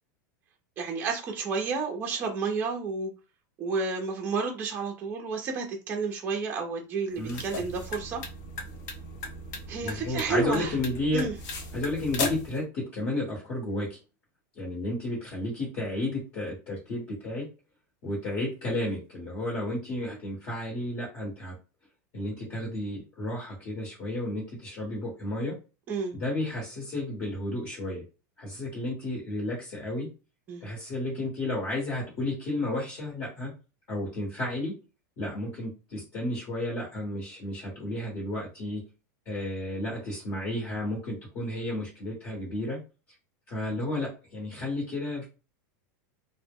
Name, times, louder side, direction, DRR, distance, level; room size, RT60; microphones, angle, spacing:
voice 1, 0.8-3.1 3.6-8.2 9.7-10.7 11.1-11.3 25.9-26.1 30.5-30.6, right 4 dB, 20° right, 1 dB, 0.5 m, -31 dB
sound 1, 7.1-12.6, left 3 dB, 60° left, 0.7 m, -37 dB
voice 2, 9.8-11.3 11.7-14.0 14.5-17.5 18.0-21.5 22.1-25.6 26.1-28.0 28.4-30.1 30.6-33.5 33.9-34.8 35.2-38.8 39.2-42.8 43.5-45.2, left 1 dB, 35° left, -3 dB, 1.1 m, -32 dB
2.1 x 2.0 x 3.5 m, 0.31 s
supercardioid pair, 165°, 10 cm